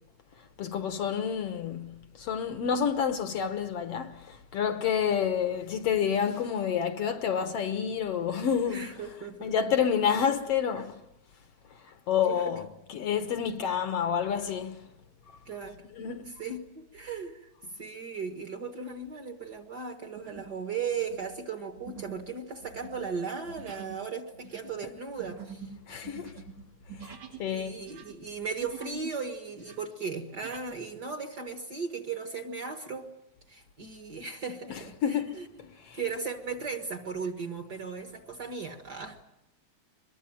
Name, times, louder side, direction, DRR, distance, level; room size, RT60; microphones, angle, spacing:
voice 1, 0.6-8.9 9.4-11.0 11.9-14.9 16.0-16.3 25.9-26.4 27.0-27.8 35.0-35.4 35.8-36.0, left 7 dB, 65° left, 1.9 m, -29 dB
voice 2, 8.7-9.6 10.8-10.9 12.3-12.5 15.5-15.8 16.2-25.7 27.5-33.1 33.5-39.2, right 5 dB, 40° right, 1.8 m, -37 dB
sound 1, 18.4-18.8 19.3-19.5 20.1-20.6 20.9-27.5 27.8-29.2 29.5-30.7, right 7 dB, 75° right, 3.7 m, -46 dB
23.0 x 22.0 x 9.1 m
omnidirectional pair, 3.3 m